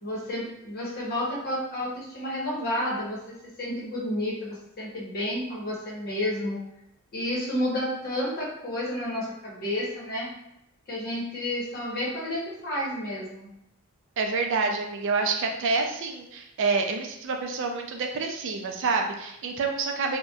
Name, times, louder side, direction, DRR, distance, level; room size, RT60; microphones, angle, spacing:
voice 1, 0.0-6.6 7.1-10.3 10.9-13.5, left 1 dB, 45° left, -5 dB, 0.8 m, -31 dB
voice 2, 14.2-20.2, right 4 dB, 60° right, 3 dB, 0.3 m, -27 dB
2.7 x 2.1 x 2.2 m, 0.82 s
head